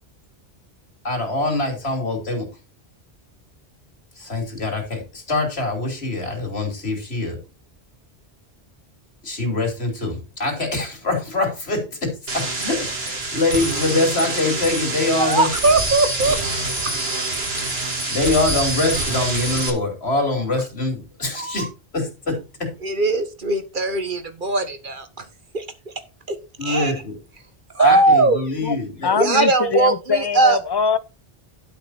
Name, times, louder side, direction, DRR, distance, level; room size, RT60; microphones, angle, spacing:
voice 1, 1.0-2.5 4.2-7.4 9.2-15.5 17.6-17.7 18.1-21.7 21.9-22.7 26.6-27.2 27.8-29.1, left 2 dB, 85° left, 3.6 m, -24 dB
sound 1, 12.3-19.7, right 2 dB, 75° right, 2.5 m, -26 dB
voice 2, 15.2-16.4 16.8-17.0 21.3-21.7 22.8-25.2 25.5-25.6 26.3-26.4 26.6-26.9 27.7-28.4 29.1-30.6, right 2 dB, 50° right, 1.5 m, -19 dB
voice 3, 29.0-31.0, left 6 dB, 30° left, 0.6 m, -22 dB
11.5 x 5.9 x 4.4 m
omnidirectional pair, 1.0 m